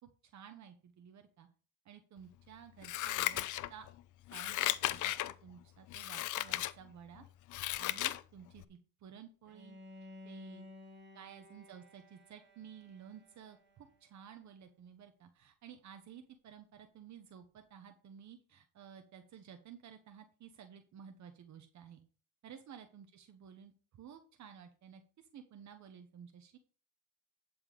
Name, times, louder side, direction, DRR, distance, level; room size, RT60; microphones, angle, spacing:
voice 1, 0.2-1.5 1.8-3.4 3.7-3.9 4.3-7.2 7.8-9.8 10.2-10.7 11.1-22.0 22.4-26.6, right 8 dB, 65° right, 7 dB, 1.2 m, -54 dB
Scissors, 2.8-3.9 4.3-5.3 5.9-6.7 7.2-8.2 8.6-8.7, left 15 dB, 80° left, 0.6 m, -35 dB
Bowed string instrument, 9.5-14.5, left 2 dB, 35° right, 2.5 m, -55 dB
11.0 x 4.6 x 5.2 m, 0.38 s
cardioid pair, 90°, 30 cm